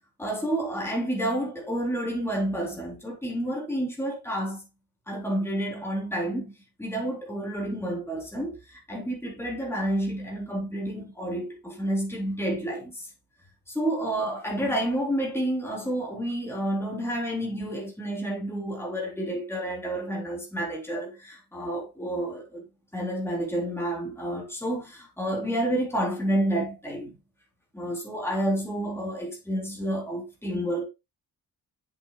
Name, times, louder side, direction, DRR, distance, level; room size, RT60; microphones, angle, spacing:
voice 1, 0.2-4.7 5.1-6.5 6.8-13.1 13.7-22.6 22.9-27.2 27.7-30.9, right 1 dB, 5° left, 3.8 m, -30 dB
8.1 x 7.8 x 2.4 m
cardioid pair, 130°, 39 cm